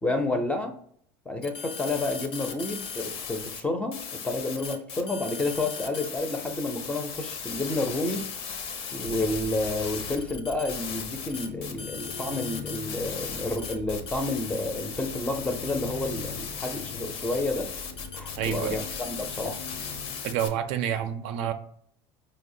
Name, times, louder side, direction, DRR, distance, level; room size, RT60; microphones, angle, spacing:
voice 1, 0.0-0.7 1.3-8.3 8.9-17.7 18.1-19.7, left 2 dB, 10° left, 5 dB, 0.5 m, -30 dB
sound 1, 1.4-3.6 3.9-20.5, left 6 dB, 55° left, 0.6 m, -37 dB
sound 2, 9.0-21.0, left 4 dB, 85° left, 1.0 m, -42 dB
voice 2, 18.4-18.8 20.2-21.5, right 10 dB, 60° right, 9 dB, 0.4 m, -28 dB
4.4 x 2.0 x 2.6 m, 0.63 s
supercardioid pair, 115°, 12 cm